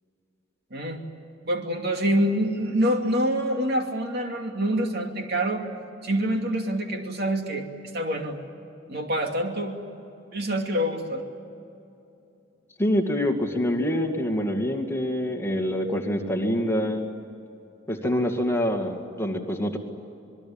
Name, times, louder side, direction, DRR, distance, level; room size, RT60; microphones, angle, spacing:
voice 1, 0.7-1.0 1.5-5.7 6.0-7.6 7.9-8.4 8.9-9.8 10.3-11.2, equal, 55° right, 3 dB, 2.7 m, -26 dB
voice 2, 12.8-17.0 17.9-19.8, equal, 15° left, 2 dB, 2.2 m, -25 dB
27.0 x 21.0 x 8.7 m, 2.7 s
head